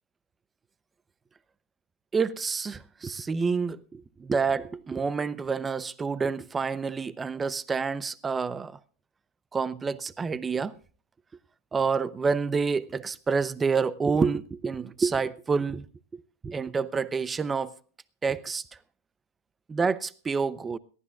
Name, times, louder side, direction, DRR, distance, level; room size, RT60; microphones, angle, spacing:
voice 1, 2.1-8.8 9.5-10.7 11.7-15.8 16.1-17.7 18.2-18.6 19.7-20.8, right 5 dB, 15° right, 0.5 m, -28 dB
21.5 x 15.0 x 2.3 m
supercardioid pair, 125°, 0 cm